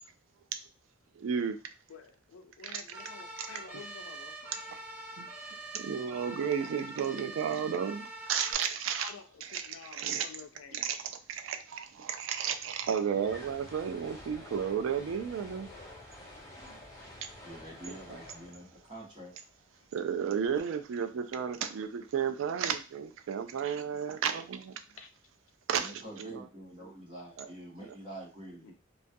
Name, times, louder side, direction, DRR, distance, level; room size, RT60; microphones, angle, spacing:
voice 1, 1.2-1.6 2.7-2.8 5.2-5.3 5.7-9.1 9.5-10.3 10.7-11.0 11.3-15.7 18.1-18.2 19.9-24.7 25.7-26.4 27.4-27.5, right 7 dB, 80° right, 0.3 m, -33 dB
voice 2, 1.9-4.5 9.0-11.1 15.2-15.9 19.8-19.9 24.9-25.1 28.6-28.7, left 6 dB, 85° left, 0.4 m, -50 dB
sound 1, 2.9-8.5, right 2 dB, 5° right, 0.4 m, -44 dB
sound 2, 11.8-11.9 12.0-20.3, left 1 dB, 15° left, 0.7 m, -50 dB
voice 3, 17.4-19.3 25.8-28.7, right 1 dB, 25° right, 0.9 m, -46 dB
2.3 x 2.2 x 2.6 m
head